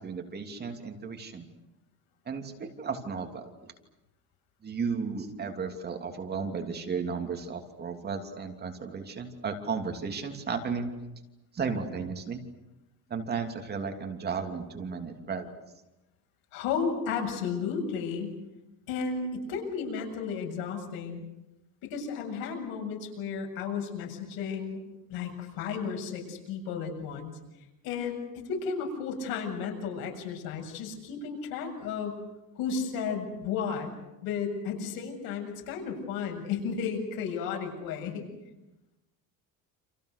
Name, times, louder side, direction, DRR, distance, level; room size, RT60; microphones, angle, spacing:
voice 1, 0.0-1.5 2.3-3.7 4.6-10.9 11.5-12.4 13.1-15.5, right 5 dB, 30° right, 4 dB, 2.9 m, -34 dB
voice 2, 16.5-18.4 18.9-21.2 21.8-24.8 25.1-27.3 27.8-32.2 32.6-33.9 34.2-38.3, left 6 dB, 90° left, 3 dB, 7.6 m, -33 dB
29.5 x 28.0 x 6.7 m, 0.96 s
cardioid pair, 155°, 34 cm